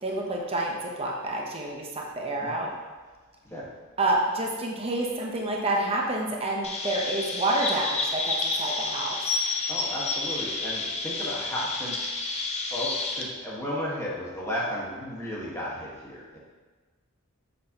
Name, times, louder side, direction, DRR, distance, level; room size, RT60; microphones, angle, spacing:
voice 1, 0.0-2.7 4.0-9.2, right 2 dB, 30° right, -1 dB, 0.8 m, -28 dB
Chirp tweet, 6.6-13.2, left 3 dB, 30° left, 0.6 m, -30 dB
voice 2, 9.7-12.1 12.7-16.4, equal, 15° left, -6 dB, 1.4 m, -34 dB
6.9 x 6.0 x 2.9 m, 1.3 s
head